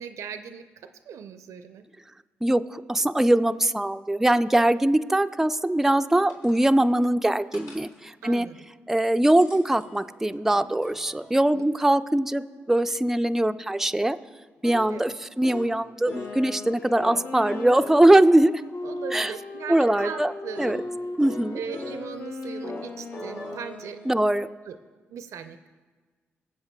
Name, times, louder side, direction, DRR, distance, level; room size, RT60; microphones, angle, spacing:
voice 1, 0.0-1.9 8.2-8.6 11.5-11.7 14.9-15.2 18.8-20.8 21.5-24.0 24.7-24.8 25.1-25.7, right 7 dB, 70° right, 10 dB, 0.5 m, -39 dB
voice 2, 2.4-8.5 8.9-14.2 14.6-18.5 19.1-19.3 19.7-20.8 21.2-21.6 24.1-24.5, right 1 dB, 5° right, 9 dB, 0.4 m, -22 dB
sound 1, 5.6-5.7 6.3-6.8 7.5-8.0 9.2-11.3 14.6-15.0 15.4-15.7 16.1-16.4 17.0-18.4 20.5-20.9 21.2-22.0 22.4-24.1, left 1 dB, 80° left, 2.2 m, -40 dB
Wind instrument woodwind instrument, 16.0-24.4, left 3 dB, 50° left, 0.8 m, -38 dB
22.0 x 7.5 x 2.2 m, 1.4 s
supercardioid pair, 50°, 5 cm